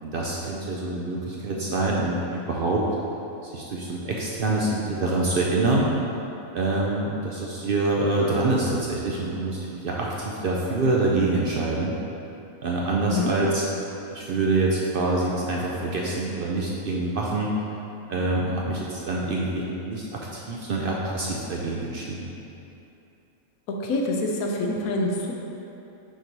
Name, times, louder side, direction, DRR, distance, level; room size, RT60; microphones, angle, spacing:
voice 1, 0.0-2.8 3.4-5.9 6.5-11.9 12.6-13.6 14.1-17.5 18.1-22.3, right 2 dB, 65° right, -3 dB, 0.5 m, -26 dB
voice 2, 23.7-25.3, left 2 dB, 80° left, 0 dB, 1.2 m, -26 dB
6.3 x 3.0 x 5.3 m, 2.9 s
omnidirectional pair, 1.5 m